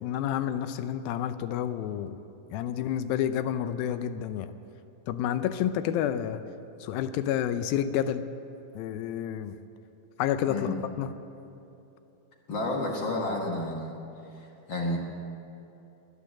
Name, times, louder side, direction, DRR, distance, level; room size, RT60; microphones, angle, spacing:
voice 1, 0.0-2.2 2.5-4.5 5.1-6.4 6.8-8.2 8.8-9.6 10.2-11.1, left 10 dB, 80° left, 11 dB, 2.4 m, -29 dB
voice 2, 12.5-14.0 14.3-15.0, left 2 dB, 60° left, -1 dB, 1.2 m, -31 dB
22.0 x 8.9 x 7.4 m, 2.9 s
omnidirectional pair, 4.3 m